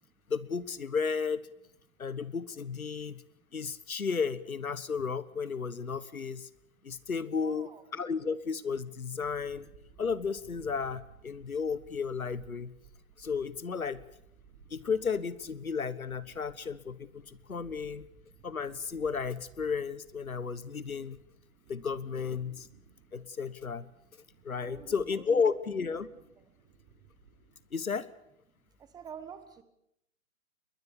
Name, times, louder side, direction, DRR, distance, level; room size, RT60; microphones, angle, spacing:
voice 1, 0.3-1.5 2.0-3.2 3.5-6.5 6.8-9.7 10.0-12.7 13.2-14.0 14.7-18.1 18.4-21.2 21.7-22.7 23.1-23.9 24.4-26.1 27.7-28.1, left 5 dB, 90° left, 17 dB, 1.4 m, -33 dB
voice 2, 7.4-7.8 11.4-11.5 21.5-21.6 22.9-23.2 24.2-25.6 26.4-26.6 28.8-29.6, right 7 dB, 10° right, 10 dB, 1.2 m, -50 dB
sound 1, 9.2-27.6, right 6 dB, 30° right, 5.8 m, -58 dB
21.5 x 20.0 x 7.1 m, 0.78 s
figure-of-eight pair, 135°, 41 cm